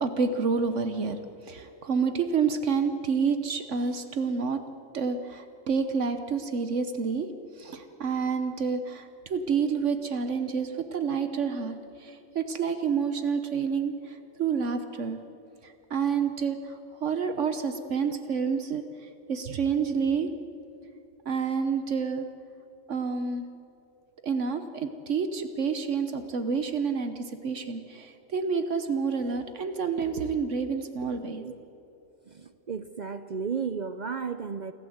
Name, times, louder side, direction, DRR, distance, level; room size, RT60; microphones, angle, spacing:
voice 1, 0.0-4.6 4.9-7.3 7.6-15.2 15.6-18.8 19.3-20.3 21.2-22.3 22.9-23.4 24.2-31.4, right 5 dB, 65° right, 9 dB, 1.3 m, -29 dB
voice 2, 32.3-34.7, right 6 dB, 50° right, 11 dB, 0.5 m, -33 dB
28.0 x 13.0 x 8.0 m, 2.8 s
omnidirectional pair, 1.4 m